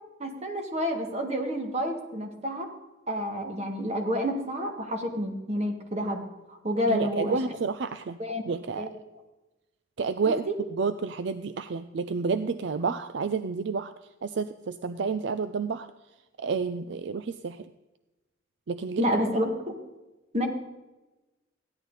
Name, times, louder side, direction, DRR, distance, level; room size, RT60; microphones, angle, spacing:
voice 1, 0.2-2.7 3.1-6.2 6.5-7.4 8.2-8.5 8.8-8.9 10.3-10.5 19.0-19.5 20.3-20.5, equal, 35° right, 3 dB, 1.8 m, -29 dB
voice 2, 6.9-8.2 8.4-8.9 10.0-13.9 14.2-15.9 16.4-17.7 18.7-19.1, right 5 dB, 60° right, 12 dB, 0.4 m, -30 dB
15.0 x 10.5 x 4.0 m, 1.1 s
head